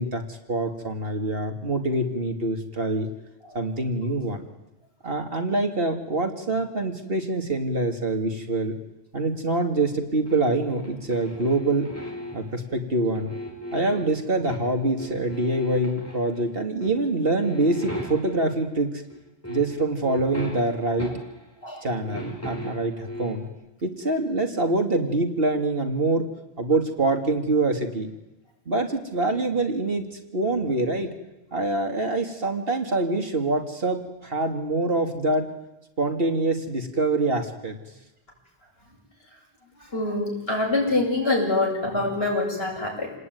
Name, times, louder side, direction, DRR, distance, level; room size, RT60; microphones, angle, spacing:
voice 1, 0.0-3.1 3.5-4.4 5.0-8.7 9.1-11.9 12.3-13.3 13.7-19.0 19.5-21.1 21.8-23.5 23.8-26.2 26.6-28.1 28.7-30.0 30.3-31.1 31.5-35.5 36.0-37.8, right 2 dB, 60° right, 4 dB, 2.7 m, -25 dB
sound 1, 10.3-12.6 13.1-14.7 15.0-16.5 16.8-17.0 17.4-18.6 19.1-19.2 19.4-21.5 21.8-23.5, equal, 15° left, 5.0 m, -37 dB
voice 2, 39.9-43.1, left 2 dB, 65° left, -1 dB, 8.1 m, -25 dB
28.5 x 19.0 x 9.5 m, 0.98 s
omnidirectional pair, 1.1 m